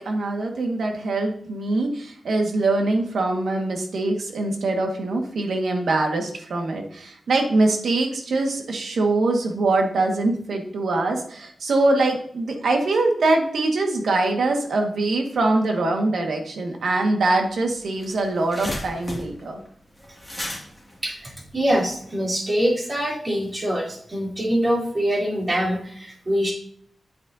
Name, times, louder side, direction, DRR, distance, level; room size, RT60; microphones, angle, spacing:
voice 1, 0.0-19.6, right 2 dB, 80° right, 2 dB, 1.7 m, -23 dB
sound 1, 17.5-17.6 17.8-22.1, left 1 dB, 5° left, 2.3 m, -35 dB
voice 2, 21.0-26.5, equal, 30° right, -3 dB, 3.3 m, -24 dB
8.8 x 8.7 x 2.8 m, 0.62 s
wide cardioid pair, 130°, 0 cm